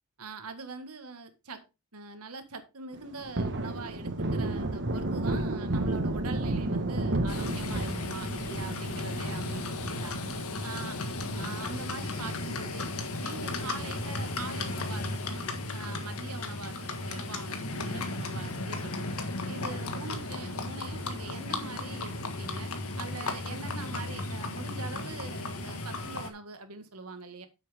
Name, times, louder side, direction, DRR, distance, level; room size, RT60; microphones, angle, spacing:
voice 1, 0.2-1.6 1.9-11.0 11.3-12.9 13.2-15.5 15.7-27.5, right 4 dB, 90° right, 8 dB, 1.7 m, -43 dB
Thunder, 2.9-13.7 14.0-14.1 14.5-16.0 16.3-16.4 16.8-17.6 18.0-18.1 18.4-18.5 20.9-21.5, right 2 dB, 55° right, 1.4 m, -33 dB
Livestock farm animals working animals, 7.3-26.3, left 2 dB, 75° left, 1.6 m, -35 dB
9.6 x 7.6 x 3.5 m, 0.27 s
head